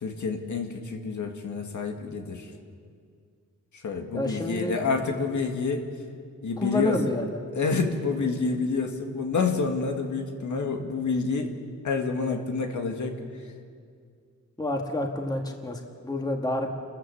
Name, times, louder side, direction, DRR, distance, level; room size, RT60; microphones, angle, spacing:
voice 1, 0.0-2.5 3.8-5.9 6.4-7.0 7.5-11.5 11.8-13.2, left 4 dB, 70° left, 3 dB, 2.1 m, -28 dB
voice 2, 4.1-4.8 6.6-7.4 7.6-7.8 14.6-16.7, left 1 dB, 10° left, 2 dB, 1.8 m, -29 dB
29.5 x 14.0 x 7.1 m, 2.2 s
wide cardioid pair, 145°, 31 cm